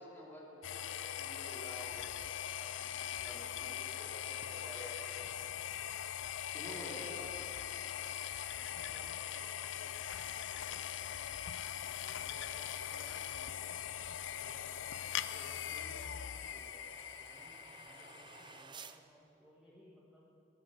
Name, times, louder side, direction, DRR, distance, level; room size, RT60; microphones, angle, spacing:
voice 1, 0.0-2.1 2.6-5.4 6.5-7.3, left 1 dB, 10° left, -6 dB, 3.7 m, -50 dB
sound 1, 0.6-18.6, left 10 dB, 90° left, 0.5 m, -41 dB
voice 2, 6.5-8.0 8.5-11.5 11.8-14.9 15.3-16.9 17.2-17.6 17.8-20.3, equal, 5° right, -7 dB, 1.8 m, -61 dB
sound 2, 11.3-19.0, right 5 dB, 25° right, 0.5 m, -59 dB
17.5 x 10.5 x 7.2 m, 2.7 s
head